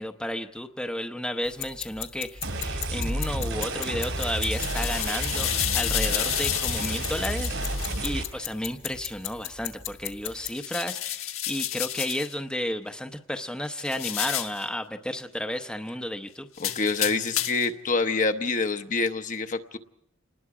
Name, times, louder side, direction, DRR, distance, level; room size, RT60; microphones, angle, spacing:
voice 1, 0.0-16.5, left 1 dB, 5° left, 5 dB, 0.8 m, -32 dB
sound 1, 1.5-10.5, left 11 dB, 65° left, 2.0 m, -37 dB
sound 2, 2.4-8.2, right 1 dB, 70° right, 3.6 m, -31 dB
sound 3, 4.0-8.1 10.5-12.3 13.8-14.6 16.6-17.7, left 12 dB, 80° left, 1.3 m, -31 dB
voice 2, 16.6-19.8, left 3 dB, 40° left, 7 dB, 0.9 m, -26 dB
28.0 x 20.0 x 4.9 m, 0.78 s
head